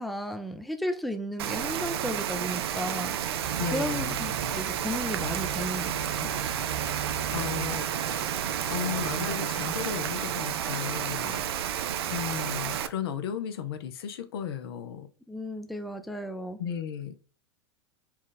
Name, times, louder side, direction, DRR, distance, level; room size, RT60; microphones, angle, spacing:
voice 1, 0.0-3.2 3.6-6.4 15.3-16.6, equal, ahead, 0.5 m, -34 dB
Rain, 1.4-12.9, right 10 dB, 65° right, 0.5 m, -31 dB
sound 1, 3.4-10.2, right 5 dB, 85° right, 0.8 m, -39 dB
voice 2, 3.6-4.2 7.3-8.3 8.7-11.4 11.7-15.1 16.6-17.2, left 8 dB, 65° left, 0.6 m, -35 dB
4.3 x 2.4 x 3.8 m
hypercardioid pair, 90°, 14 cm